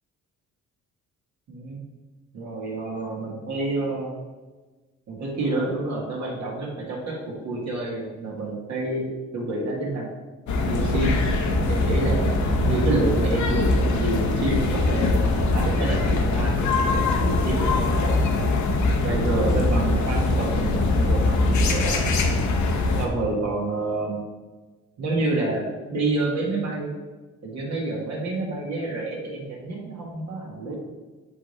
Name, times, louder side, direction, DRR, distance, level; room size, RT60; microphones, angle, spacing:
voice 1, 1.5-1.8 2.3-4.1 5.1-9.0 9.3-10.1 10.7-11.2 11.7-12.3 12.6-18.3 19.0-22.0 23.0-24.2 25.0-26.9 27.4-30.7, right 2 dB, 65° right, -4 dB, 1.9 m, -28 dB
sound 1, 10.5-23.1, left 2 dB, 70° left, 1.0 m, -22 dB
8.4 x 3.5 x 4.1 m, 1.2 s
cardioid pair, 90°, 30 cm